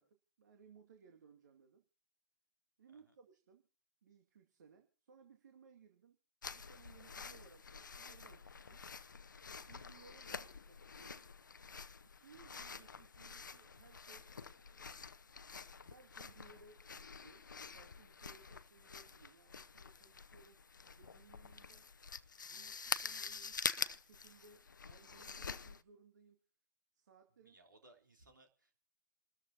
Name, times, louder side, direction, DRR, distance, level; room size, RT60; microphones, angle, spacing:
voice 1, 0.0-1.8 2.8-3.7 4.0-6.2 6.5-8.9 9.6-11.3 12.0-15.4 15.7-21.9 22.4-26.4 26.9-27.5, right 5 dB, 65° right, 4 dB, 2.2 m, -64 dB
sound 1, 6.4-25.8, left 5 dB, 80° left, 0.7 m, -47 dB
voice 2, 27.4-28.8, right 2 dB, 85° right, 4 dB, 3.4 m, -65 dB
28.5 x 13.5 x 2.8 m, 0.34 s
figure-of-eight pair, 110°, 10 cm